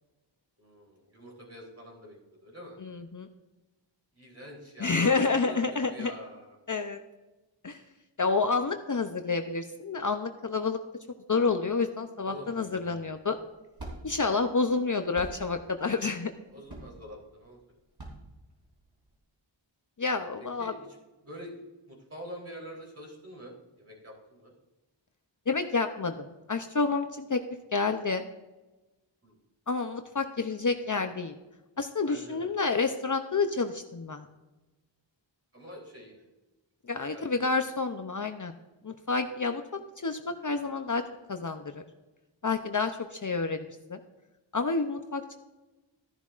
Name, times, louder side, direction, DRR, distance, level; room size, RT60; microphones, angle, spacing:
voice 1, 0.6-2.8 4.2-5.6 5.9-6.6 12.2-12.6 16.5-17.6 20.6-20.9 21.2-21.5 21.9-24.5 29.2-29.4 32.1-32.5 35.5-36.3 37.1-37.3, equal, 30° right, -2 dB, 3.5 m, -46 dB
voice 2, 2.8-3.3 4.8-6.1 6.7-7.0 7.6-7.8 8.2-10.8 11.3-13.4 14.0-16.3 20.0-20.7 25.5-27.4 27.7-28.2 29.7-31.3 31.8-34.3 36.9-38.5 38.8-39.6 40.0-41.0 41.3-41.8 42.4-44.0 44.5-45.4, left 4 dB, 40° left, 7 dB, 0.6 m, -29 dB
sound 1, 13.1-19.2, right 1 dB, 60° right, 3.4 m, -46 dB
13.5 x 11.0 x 2.5 m, 1.1 s
wide cardioid pair, 75°, 46 cm